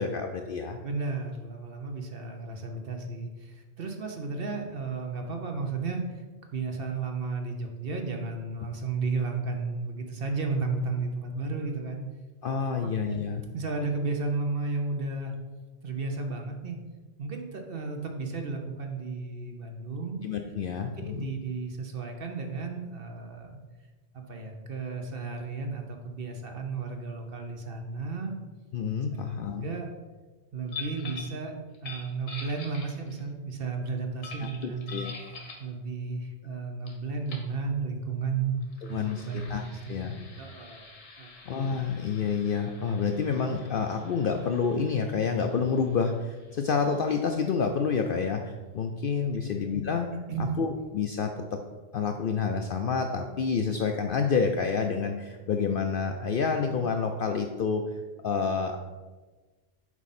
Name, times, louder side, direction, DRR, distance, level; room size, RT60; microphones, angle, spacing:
voice 1, 0.0-0.8 12.4-13.4 20.2-21.3 28.7-29.7 34.4-34.5 34.9-35.1 38.8-39.6 39.9-40.2 41.5-50.1 50.6-51.6 51.9-57.9 58.2-58.8, left 5 dB, 60° left, 4 dB, 0.6 m, -28 dB
voice 2, 0.8-6.2 6.5-12.0 12.8-13.1 13.5-15.3 15.8-16.8 17.2-20.2 21.0-23.6 24.1-28.4 29.1-29.2 29.6-29.9 30.5-35.0 35.6-38.6 38.9-41.3 49.4-49.5 50.3-50.6, right 4 dB, 50° right, 3 dB, 0.9 m, -33 dB
sound 1, 30.7-31.4 31.7-33.3 34.2-35.7 36.9-37.0 37.3-37.5 38.6-47.9, left 4 dB, 85° left, 1.6 m, -46 dB
7.2 x 4.9 x 4.2 m, 1.3 s
omnidirectional pair, 1.3 m